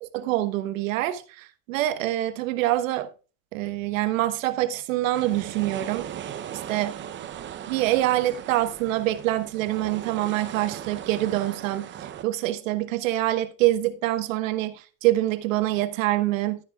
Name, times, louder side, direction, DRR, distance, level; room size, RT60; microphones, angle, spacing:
voice 1, 0.0-3.1 3.5-6.1 6.5-6.9 7.7-16.6, right 15 dB, 85° right, 1.2 m, -25 dB
sound 1, 5.1-12.2, right 10 dB, 30° right, 0.7 m, -38 dB
13.0 x 9.6 x 2.4 m
supercardioid pair, 120°, 38 cm